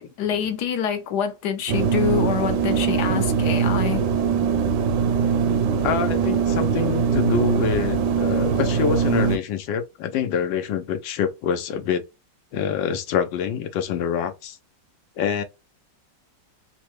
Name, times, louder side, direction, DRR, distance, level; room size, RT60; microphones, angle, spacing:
voice 1, 0.2-4.0, left 8 dB, 70° left, 1.1 m, -26 dB
sound 1, 1.7-9.4, right 6 dB, 75° right, 1.2 m, -22 dB
voice 2, 5.8-12.0 12.5-14.6 15.2-15.4, left 8 dB, 85° left, 1.4 m, -26 dB
3.7 x 2.1 x 3.0 m
omnidirectional pair, 1.9 m